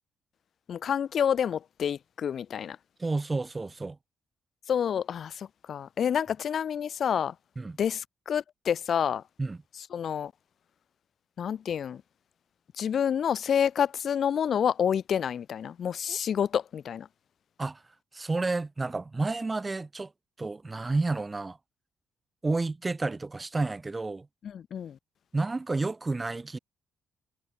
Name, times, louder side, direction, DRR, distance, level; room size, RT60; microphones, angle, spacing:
voice 1, 0.7-2.8 4.7-7.4 7.8-9.2 9.8-10.3 11.4-12.0 12.8-17.1 24.4-25.0, left 8 dB, 60° left, 0.7 m, -28 dB
voice 2, 3.0-4.0 7.6-7.8 9.4-9.6 17.6-17.8 18.1-20.1 20.4-21.6 22.4-24.3 25.3-26.6, right 3 dB, 20° right, 0.5 m, -30 dB
cardioid pair, 90°, 0 cm